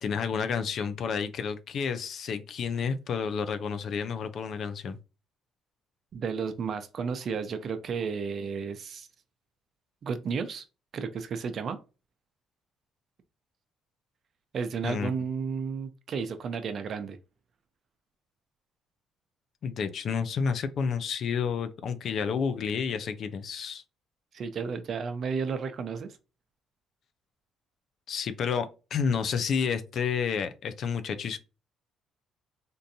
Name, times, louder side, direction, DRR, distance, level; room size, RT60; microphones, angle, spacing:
voice 1, 0.0-5.0 14.8-15.1 19.6-23.8 28.1-31.4, left 6 dB, 60° left, 0.5 m, -30 dB
voice 2, 6.1-9.1 10.0-10.6 10.9-11.8 14.5-17.2 24.3-26.2, right 5 dB, 55° right, 0.6 m, -32 dB
3.7 x 2.6 x 2.7 m
cardioid pair, 90°, 0 cm